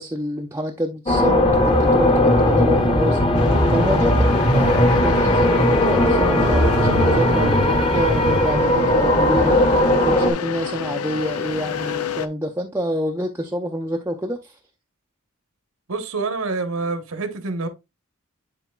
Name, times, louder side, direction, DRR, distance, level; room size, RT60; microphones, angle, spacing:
voice 1, 0.0-14.6, equal, 10° right, 0.5 m, -27 dB
sound 1, 1.1-10.3, left 1 dB, 25° left, 1.0 m, -18 dB
sound 2, 1.5-8.4, right 1 dB, 45° left, 1.7 m, -25 dB
sound 3, 3.3-12.3, left 6 dB, 90° left, 0.5 m, -28 dB
voice 2, 15.9-17.7, right 3 dB, 75° right, 1.2 m, -26 dB
10.0 x 4.1 x 2.3 m
head